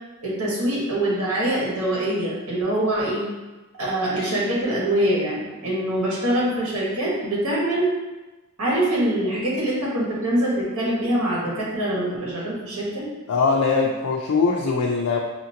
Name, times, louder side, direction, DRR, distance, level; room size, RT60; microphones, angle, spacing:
voice 1, 0.2-3.2 3.8-7.9 8.6-13.1, right 1 dB, 75° right, -6 dB, 1.4 m, -24 dB
voice 2, 13.3-15.2, left 4 dB, 90° left, -1 dB, 0.4 m, -21 dB
4.9 x 2.6 x 2.8 m, 1.1 s
head